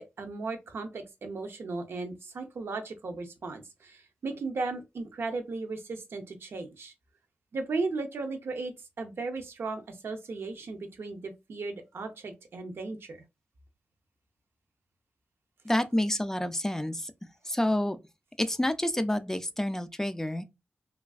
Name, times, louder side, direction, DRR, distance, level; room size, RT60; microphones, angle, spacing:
voice 1, 0.0-6.9 7.5-8.7 9.0-13.2, right 3 dB, 75° right, 0.6 m, -36 dB
voice 2, 15.7-17.1 17.5-18.0 18.4-20.4, left 1 dB, 10° left, 0.3 m, -28 dB
3.2 x 2.4 x 2.3 m
wide cardioid pair, 130°, 4 cm